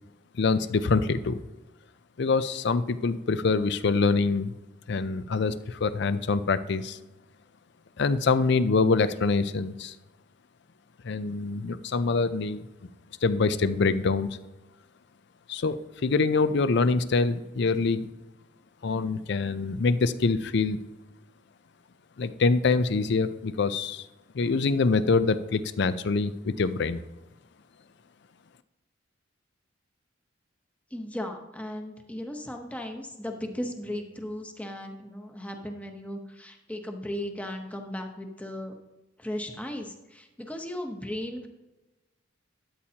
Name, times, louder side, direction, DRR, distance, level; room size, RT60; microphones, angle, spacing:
voice 1, 0.4-1.4 2.2-4.5 4.9-7.0 8.0-9.9 11.0-12.6 13.2-14.3 15.5-18.1 18.8-20.8 22.2-24.0 24.3-27.0, left 4 dB, 60° left, 13 dB, 0.5 m, -25 dB
voice 2, 30.9-38.7 39.2-41.5, left 1 dB, 5° left, 4 dB, 0.9 m, -36 dB
13.0 x 8.7 x 2.8 m, 1.1 s
head